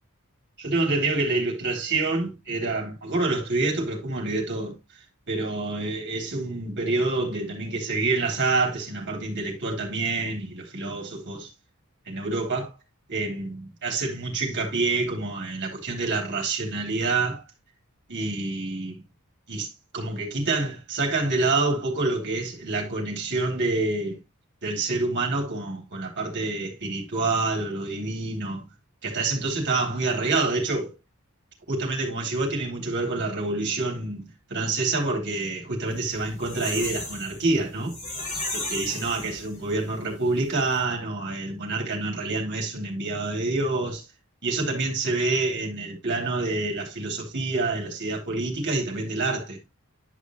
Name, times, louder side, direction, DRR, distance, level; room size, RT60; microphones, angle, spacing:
voice 1, 0.6-4.8 5.3-11.5 12.1-12.7 13.1-17.4 18.1-19.0 19.5-19.7 19.9-24.2 24.6-28.6 29.0-30.9 31.7-38.0 38.5-44.0 44.4-49.6, right 3 dB, 55° right, 3.5 m, -27 dB
sound 1, 36.0-39.9 40.3-40.4 40.6-40.8, left 2 dB, 35° left, 4.9 m, -34 dB
11.0 x 5.4 x 3.1 m
head